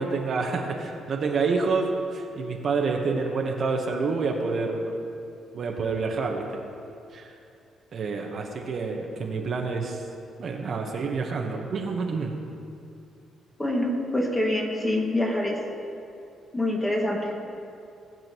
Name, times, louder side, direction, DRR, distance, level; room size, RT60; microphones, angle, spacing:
voice 1, 0.0-4.8 5.5-6.4 7.1-7.3 7.9-10.0 10.4-12.3, right 4 dB, 55° right, 1 dB, 1.1 m, -28 dB
voice 2, 13.6-15.6 16.5-17.4, left 1 dB, 20° left, -1 dB, 2.0 m, -25 dB
19.0 x 7.4 x 3.0 m, 2.6 s
cardioid pair, 90°, 0 cm